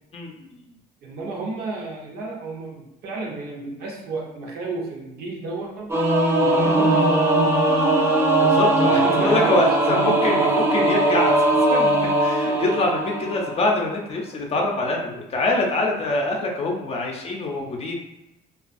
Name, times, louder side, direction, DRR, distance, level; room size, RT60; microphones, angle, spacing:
voice 1, 0.1-0.6 8.4-11.4 11.7-18.0, left 2 dB, 35° left, 0 dB, 0.5 m, -24 dB
voice 2, 1.0-6.0 6.4-7.5 8.9-10.5, right 3 dB, 70° right, -1 dB, 0.7 m, -33 dB
Singing / Musical instrument, 5.9-13.7, right 2 dB, 15° right, 0.5 m, -19 dB
2.3 x 2.2 x 2.5 m, 0.90 s
cardioid pair, 110°, 17 cm